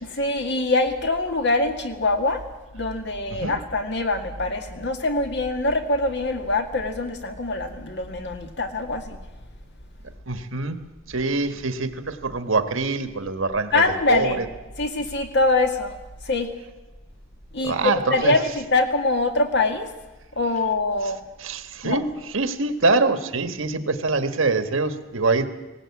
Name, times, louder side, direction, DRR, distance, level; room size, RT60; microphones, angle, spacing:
voice 1, 0.0-2.4 2.7-9.2 13.7-14.4 14.8-15.9 16.2-16.5 17.5-19.9 20.4-21.2 21.8-22.0, left 2 dB, 55° left, 5 dB, 2.1 m, -24 dB
voice 2, 10.3-10.8 11.1-14.4 17.6-18.3 21.4-25.4, right 3 dB, 70° right, 8 dB, 1.6 m, -24 dB
19.0 x 18.0 x 8.6 m, 1.1 s
head